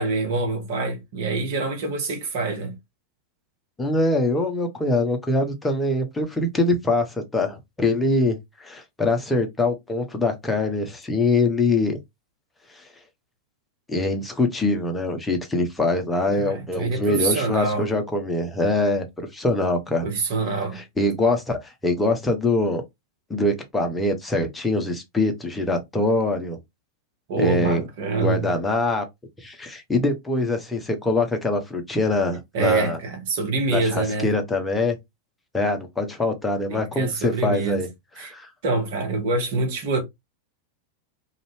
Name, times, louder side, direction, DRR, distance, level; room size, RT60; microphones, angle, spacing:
voice 1, 0.0-2.7 16.3-17.9 20.0-20.8 27.3-28.5 32.5-34.3 36.7-37.8 38.2-38.3 38.6-40.0, right 3 dB, 50° right, 1.1 m, -25 dB
voice 2, 3.8-12.0 12.7-12.9 13.9-20.0 20.7-22.8 23.3-26.6 27.4-27.8 28.2-29.1 29.4-33.0 33.7-35.0 35.5-37.9 38.2-38.5, left 2 dB, 10° left, 0.8 m, -23 dB
2.6 x 2.4 x 3.3 m
figure-of-eight pair, 90°, 0 cm